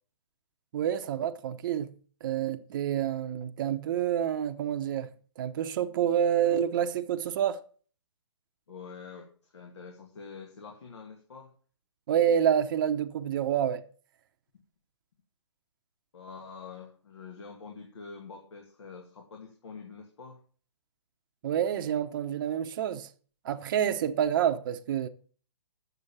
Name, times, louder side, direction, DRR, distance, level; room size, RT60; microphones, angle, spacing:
voice 1, 0.7-7.6 12.1-13.8 21.4-23.1 23.4-25.1, right 9 dB, 45° right, 0.8 m, -28 dB
voice 2, 8.7-11.5 16.1-20.4, left 5 dB, 75° left, 2.3 m, -46 dB
8.1 x 6.7 x 7.1 m
hypercardioid pair, 145°, 15 cm